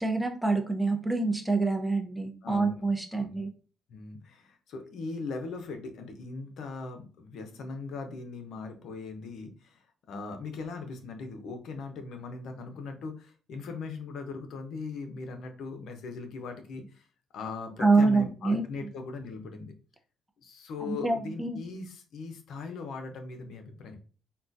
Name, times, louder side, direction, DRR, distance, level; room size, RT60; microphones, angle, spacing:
voice 1, 0.0-3.5 17.8-18.6 20.8-21.6, right 3 dB, 5° right, 3 dB, 0.6 m, -26 dB
voice 2, 2.4-2.9 3.1-3.5 3.9-17.0 17.3-19.7 20.4-24.0, left 4 dB, 75° left, 6 dB, 0.6 m, -39 dB
3.7 x 2.3 x 2.6 m, 0.37 s
cardioid pair, 90°, 0 cm